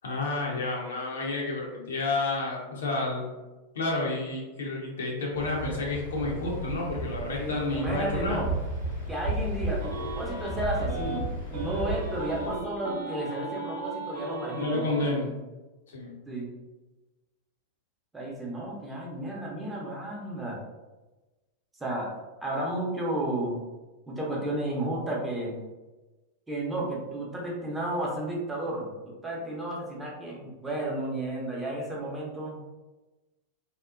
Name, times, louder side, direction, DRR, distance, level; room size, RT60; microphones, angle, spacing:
voice 1, 0.0-3.3 3.7-8.4 14.6-15.4 15.9-16.2, left 2 dB, 65° left, -2 dB, 0.6 m, -30 dB
Waves surf, 5.3-12.6, right 2 dB, 90° left, 1.1 m, -34 dB
voice 2, 7.3-8.5 9.1-14.9 16.3-16.5 18.1-20.6 21.8-22.1 22.4-23.6 24.1-25.7 26.5-32.6, right 1 dB, 10° right, -3 dB, 0.6 m, -32 dB
sound 1, 9.8-11.2 11.5-15.1, right 2 dB, 60° right, 0.5 m, -37 dB
2.8 x 2.0 x 2.4 m, 1.1 s
figure-of-eight pair, 90°, 0 cm